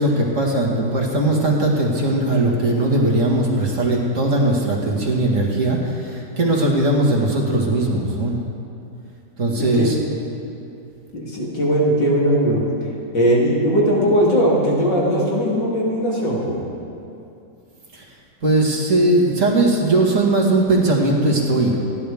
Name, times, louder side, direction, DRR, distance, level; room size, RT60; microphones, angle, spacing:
voice 1, 0.0-8.3 9.4-10.0 17.9-18.0 18.4-21.8, right 2 dB, 45° right, -2 dB, 2.2 m, -19 dB
voice 2, 9.6-9.9 11.1-12.6 13.1-16.6, equal, 90° left, -5 dB, 3.7 m, -19 dB
28.5 x 11.0 x 3.6 m, 2.7 s
omnidirectional pair, 1.9 m